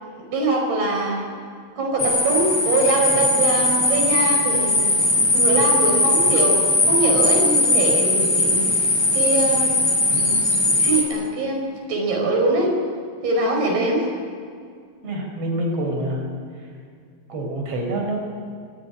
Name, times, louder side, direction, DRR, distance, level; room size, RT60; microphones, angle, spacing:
voice 1, 0.0-1.2 1.8-5.0 5.3-8.7 9.1-9.7 10.1-12.8 13.2-14.1, right 2 dB, 75° right, 0 dB, 6.7 m, -23 dB
sound 1, 2.0-11.0, left 2 dB, 40° left, 6.2 m, -19 dB
voice 2, 15.0-16.3 17.3-18.2, right 1 dB, 40° right, 0 dB, 5.7 m, -26 dB
25.0 x 21.0 x 10.0 m, 2.2 s
omnidirectional pair, 4.5 m